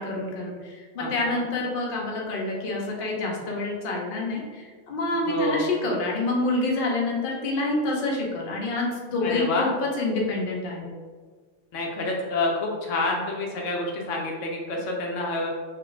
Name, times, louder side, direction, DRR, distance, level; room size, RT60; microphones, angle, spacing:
voice 1, 0.0-10.9, left 2 dB, 55° left, -2 dB, 0.7 m, -27 dB
voice 2, 1.0-1.4 5.3-5.6 9.2-9.7 11.7-15.5, left 2 dB, 80° left, -1 dB, 0.9 m, -28 dB
3.0 x 2.4 x 3.1 m, 1.5 s
omnidirectional pair, 1.3 m